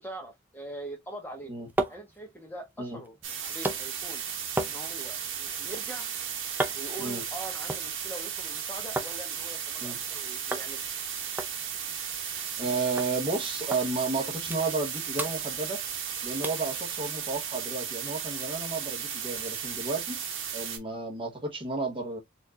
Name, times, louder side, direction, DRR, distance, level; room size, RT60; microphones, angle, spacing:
voice 1, 0.0-1.5 1.9-3.2 3.4-4.2 4.6-6.1 6.7-10.8, right 1 dB, 10° left, 0.9 m, -42 dB
sound 1, 1.3-9.2 9.5-10.1 10.5-10.7 11.0-11.1 11.4-12.7 13.0-13.1 13.7-13.8 14.2-14.9 15.1-16.1 16.4-16.7 17.2-17.3, right 2 dB, 10° right, 0.5 m, -36 dB
sound 2, 3.2-20.8, right 8 dB, 60° right, 1.2 m, -35 dB
voice 2, 12.6-15.8 16.2-20.2 20.5-22.2, right 3 dB, 25° right, 1.0 m, -32 dB
4.4 x 2.5 x 2.8 m
head